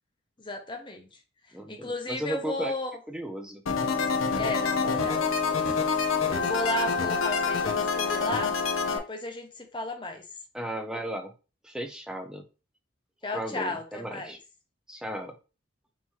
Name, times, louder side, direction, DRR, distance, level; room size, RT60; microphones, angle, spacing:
voice 1, 0.4-1.2 1.5-3.0 4.4-5.6 5.9-8.5 8.9-10.2 13.2-14.4, left 2 dB, 25° left, 3 dB, 0.8 m, -34 dB
voice 2, 1.5-2.7 3.1-3.6 10.5-11.3 11.6-12.4 13.3-14.4 14.9-15.3, right 1 dB, 5° right, 5 dB, 0.5 m, -35 dB
sound 1, 3.7-9.0, left 5 dB, 90° left, 0.8 m, -26 dB
5.5 x 3.0 x 2.9 m, 0.32 s
head